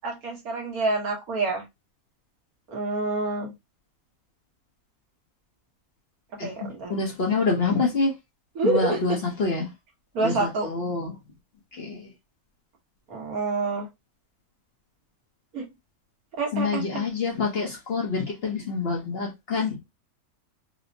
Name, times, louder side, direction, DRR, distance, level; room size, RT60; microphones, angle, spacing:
voice 1, 0.0-1.6 2.7-3.5 6.4-6.9 8.5-9.2 10.1-10.7 13.1-13.9 15.5-15.6 16.4-16.8, right 3 dB, 75° right, 1.6 m, -27 dB
voice 2, 6.4-8.1 8.6-9.7 10.2-11.2 11.8-12.1 16.5-19.8, left 4 dB, 50° left, 0.9 m, -26 dB
4.2 x 2.1 x 2.6 m
omnidirectional pair, 1.6 m